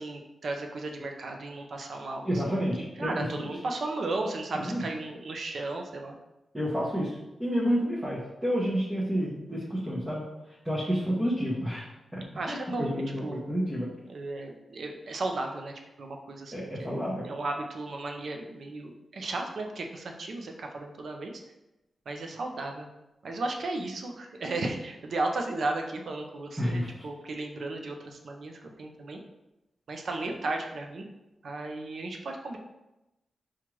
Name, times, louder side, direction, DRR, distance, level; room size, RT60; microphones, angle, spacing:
voice 1, 0.0-2.4 3.0-6.2 10.9-11.0 12.4-13.5 14.1-17.0 17.2-21.3 22.1-22.9 23.2-29.2 29.9-31.0 31.4-32.6, right 2 dB, 60° right, 3 dB, 0.5 m, -35 dB
voice 2, 2.2-3.5 4.5-4.8 6.5-10.2 10.6-11.9 12.1-13.9 16.5-17.2 26.6-27.1, equal, 10° right, -7 dB, 0.7 m, -30 dB
5.9 x 2.4 x 3.0 m, 0.97 s
wide cardioid pair, 135°, 0 cm